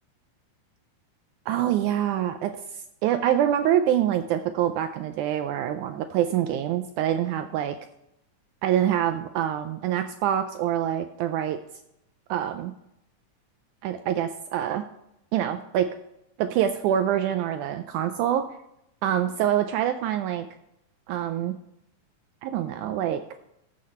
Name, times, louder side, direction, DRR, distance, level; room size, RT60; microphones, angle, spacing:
voice 1, 1.5-2.6 3.0-7.8 8.6-11.6 12.3-12.7 13.8-14.8 15.3-15.9 16.4-18.5 19.0-20.5 21.1-21.5 22.4-23.2, right 10 dB, 80° right, 9 dB, 1.9 m, -25 dB
15.0 x 5.8 x 4.3 m, 0.82 s
omnidirectional pair, 3.7 m